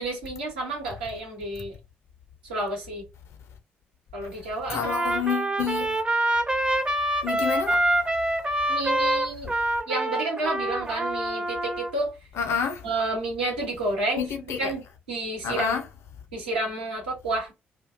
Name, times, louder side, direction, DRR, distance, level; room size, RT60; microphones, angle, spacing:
voice 1, 0.0-1.8 2.4-3.0 4.1-5.1 8.7-9.5 9.9-12.2 12.8-14.3 14.6-14.8 15.1-15.8 16.3-17.5, right 2 dB, 80° right, 0.9 m, -30 dB
voice 2, 4.7-6.0 7.2-7.8 12.4-12.9 14.2-14.7 15.4-15.8, left 7 dB, 55° left, 0.5 m, -28 dB
Trumpet, 4.8-11.9, right 1 dB, 20° right, 0.5 m, -26 dB
2.4 x 2.1 x 2.4 m
figure-of-eight pair, 40°, 5 cm